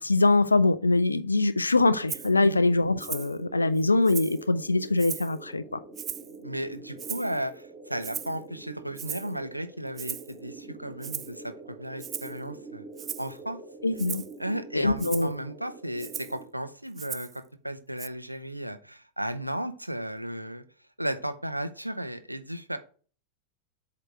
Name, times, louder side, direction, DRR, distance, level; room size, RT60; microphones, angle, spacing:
voice 1, 0.0-5.8 13.8-14.2 14.7-15.3, left 2 dB, 80° left, 0.4 m, -23 dB
sound 1, 1.8-16.5, right 3 dB, 10° right, 1.9 m, -46 dB
Rattle (instrument), 2.1-2.3 3.0-3.3 3.8-4.4 5.0-5.4 5.9-6.4 7.0-7.4 8.0-8.4 9.0-9.3 10.0-10.3 11.0-11.3 12.0-12.4 13.0-13.3 14.0-14.3 15.0-15.3 16.0-16.4 17.0-17.4 18.0-18.1, right 8 dB, 25° right, 0.3 m, -37 dB
voice 2, 6.4-11.5 11.8-12.8 13.2-13.6 14.4-20.6 21.0-22.8, right 1 dB, 90° right, 0.5 m, -34 dB
7.8 x 2.9 x 4.7 m
figure-of-eight pair, 90°, 0 cm